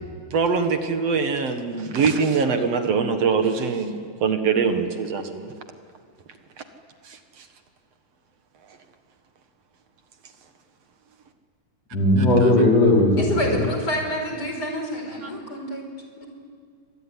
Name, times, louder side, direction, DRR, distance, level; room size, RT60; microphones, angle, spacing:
voice 1, 0.3-5.5 7.1-7.2 15.2-15.3, right 5 dB, 55° right, 7 dB, 2.4 m, -23 dB
voice 2, 11.9-13.6, left 1 dB, 50° left, -2 dB, 5.8 m, -18 dB
voice 3, 13.2-15.8 16.2-16.3, equal, 30° left, 3 dB, 5.4 m, -29 dB
25.0 x 22.5 x 9.9 m, 2.2 s
omnidirectional pair, 3.8 m